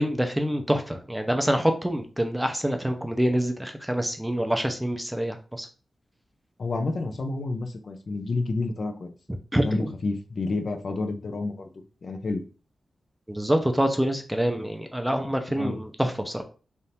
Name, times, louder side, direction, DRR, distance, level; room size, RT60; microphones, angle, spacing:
voice 1, 0.0-5.7 9.5-9.8 13.3-16.4, equal, 5° right, 5 dB, 0.6 m, -26 dB
voice 2, 6.6-9.1 9.6-11.7 12.0-12.4 15.5-15.8, left 3 dB, 55° left, 5 dB, 0.6 m, -29 dB
3.5 x 2.6 x 4.2 m, 0.36 s
wide cardioid pair, 90°, 0 cm